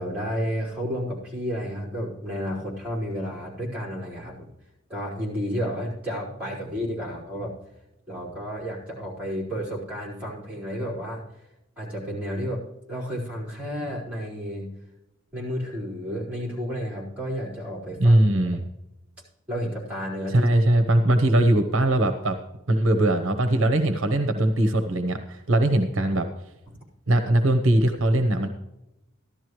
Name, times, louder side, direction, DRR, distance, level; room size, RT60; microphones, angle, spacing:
voice 1, 0.0-4.5 4.9-7.5 8.1-11.2 11.8-12.6 12.9-14.7 15.3-18.2 19.5-20.5, equal, 5° right, -7 dB, 4.4 m, -31 dB
voice 2, 18.0-18.7 20.3-22.4 22.7-26.3 27.1-28.5, right 1 dB, 65° right, 7 dB, 0.9 m, -20 dB
14.5 x 12.0 x 3.1 m, 0.91 s
head